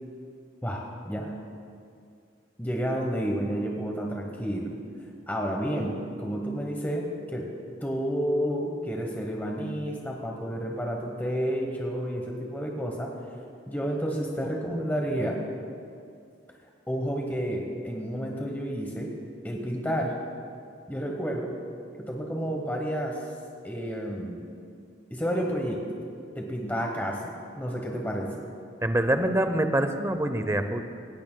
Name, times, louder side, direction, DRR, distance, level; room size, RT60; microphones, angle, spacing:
voice 1, 0.6-1.4 2.6-4.8 5.3-7.5 7.8-13.1 13.7-15.4 16.9-19.1 19.4-20.1 20.9-21.5 22.1-23.2 23.6-24.5 25.1-25.8 26.4-28.4, equal, 10° left, 0 dB, 0.9 m, -30 dB
voice 2, 28.8-30.8, right 1 dB, 15° right, 8 dB, 0.6 m, -25 dB
17.5 x 17.0 x 2.2 m, 2.4 s
head